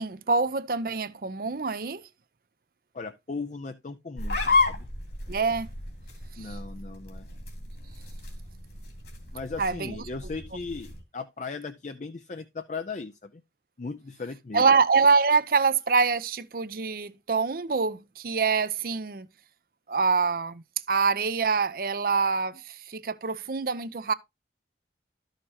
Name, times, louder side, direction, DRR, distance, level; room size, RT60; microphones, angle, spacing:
voice 1, 0.0-2.0 5.3-5.7 6.4-6.5 9.6-10.0 14.5-19.3 19.9-24.1, right 5 dB, 55° right, 0.6 m, -25 dB
voice 2, 2.9-4.9 6.4-7.3 9.3-13.4 13.8-14.6, left 4 dB, 40° left, 0.5 m, -37 dB
sound 1, 4.2-11.0, left 3 dB, 70° left, 3.0 m, -32 dB
12.5 x 6.6 x 2.8 m
head